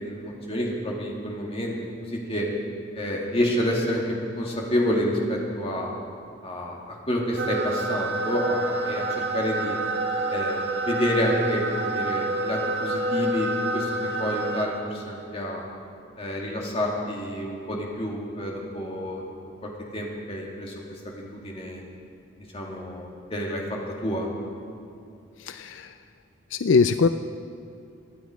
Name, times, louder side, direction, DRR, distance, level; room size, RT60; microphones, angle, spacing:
voice 1, 0.0-1.8 2.1-2.5 2.9-5.9 6.4-9.8 10.3-13.9 14.2-15.6 16.2-19.2 19.6-20.7 21.0-21.8 22.5-23.6 24.0-24.3, equal, 30° left, -2 dB, 2.3 m, -28 dB
sound 1, 7.4-14.7, right 2 dB, 65° right, 1.8 m, -28 dB
voice 2, 25.5-25.9 26.5-27.1, left 5 dB, 80° left, 10 dB, 0.4 m, -21 dB
24.0 x 9.4 x 5.0 m, 2.5 s
head